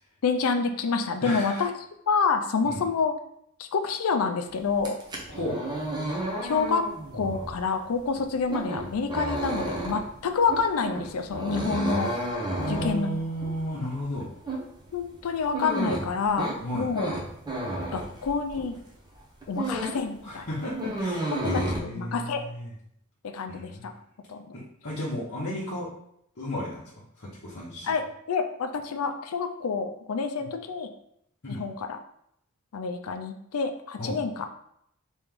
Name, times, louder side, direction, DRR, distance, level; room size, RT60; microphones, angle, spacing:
voice 1, 0.2-1.7 2.1-3.1 3.6-5.0 6.4-6.8 7.1-12.1 12.7-13.1 14.9-17.1 17.9-18.8 19.5-20.5 21.3-22.4 23.3-23.9 24.3-24.5 27.9-30.9 31.5-32.0 32.7-34.5, left 5 dB, 70° left, 6 dB, 0.4 m, -28 dB
voice 2, 1.2-1.6 2.6-2.8 5.3-5.6 12.6-14.3 16.6-16.9 20.2-22.7 23.5-23.9 24.5-25.9 26.4-26.8 27.2-27.9 30.4-30.5 31.4-31.6 34.0-34.2, left 1 dB, 50° left, -8 dB, 0.9 m, -33 dB
sound 1, 4.7-18.8 19.1-20.1 20.4-21.8, right 1 dB, 20° right, 0.6 m, -32 dB
3.2 x 3.0 x 3.6 m, 0.73 s
head